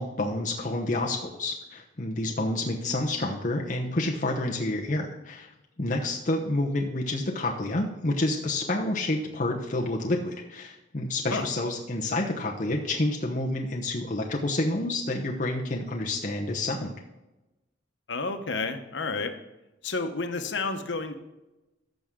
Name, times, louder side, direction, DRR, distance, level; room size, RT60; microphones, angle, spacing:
voice 1, 0.0-5.5 5.8-16.9, left 2 dB, 45° left, -1 dB, 1.0 m, -29 dB
voice 2, 18.1-19.3 19.8-21.1, left 3 dB, 85° left, 7 dB, 1.0 m, -30 dB
14.5 x 6.2 x 3.7 m, 0.99 s
head